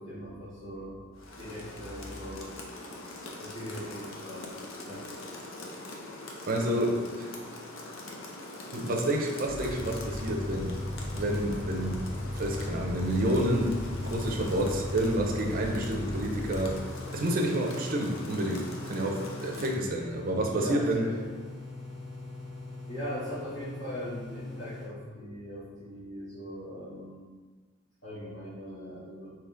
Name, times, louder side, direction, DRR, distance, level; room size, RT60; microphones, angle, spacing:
voice 1, 0.0-1.0 1.4-2.5 3.4-5.1 6.6-6.9 20.5-21.2 22.9-27.3 28.0-29.4, equal, 60° left, -14 dB, 1.2 m, -40 dB
Rain, 1.2-19.9, left 2 dB, 80° left, 0.6 m, -43 dB
voice 2, 6.5-7.3 8.7-10.8 11.1-12.0 12.3-13.7 14.0-16.8 17.1-21.0, right 1 dB, 45° right, 1 dB, 0.5 m, -29 dB
sound 1, 9.5-16.8, left 1 dB, 10° left, 0.3 m, -36 dB
sound 2, 10.1-24.9, left 3 dB, 30° left, 1.2 m, -42 dB
3.5 x 2.8 x 3.7 m, 1.4 s
head